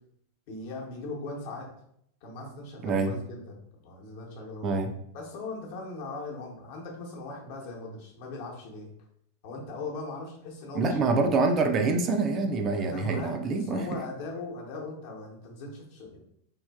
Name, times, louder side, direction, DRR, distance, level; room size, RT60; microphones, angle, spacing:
voice 1, 0.5-1.7 2.2-4.7 5.1-8.9 9.4-11.1 12.8-16.2, left 3 dB, 50° left, -1 dB, 0.8 m, -39 dB
voice 2, 10.7-14.0, right 3 dB, 30° right, 4 dB, 0.3 m, -26 dB
3.3 x 2.5 x 2.3 m, 0.70 s
figure-of-eight pair, 90°, 0 cm